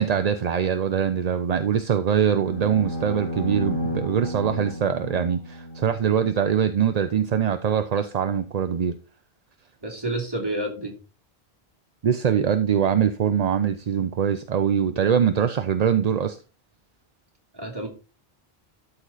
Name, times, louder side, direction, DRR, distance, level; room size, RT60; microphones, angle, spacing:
voice 1, 0.0-9.0 12.0-16.4, right 8 dB, 50° right, 0.6 m, -23 dB
sound 1, 2.3-6.6, equal, 25° left, 2.6 m, -32 dB
voice 2, 9.8-10.9 17.5-17.9, right 1 dB, 20° right, 2.7 m, -29 dB
13.0 x 4.3 x 4.0 m
omnidirectional pair, 1.1 m